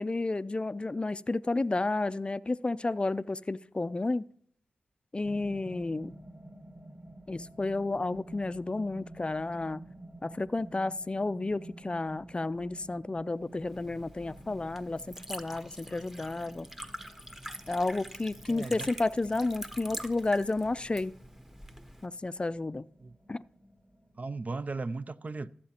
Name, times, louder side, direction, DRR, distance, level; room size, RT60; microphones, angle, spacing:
voice 1, 0.0-4.3 5.1-6.1 7.3-9.8 10.2-16.7 17.7-21.1 22.0-22.8 23.3-23.4, left 2 dB, 30° left, 0.4 m, -31 dB
sound 1, 5.2-24.7, right 1 dB, 25° right, 1.6 m, -51 dB
Liquid, 13.5-22.1, equal, 10° right, 1.0 m, -45 dB
voice 2, 18.5-18.9 23.0-23.2 24.2-25.5, right 3 dB, 45° right, 0.5 m, -36 dB
15.5 x 7.6 x 2.9 m
cardioid pair, 45°, 4 cm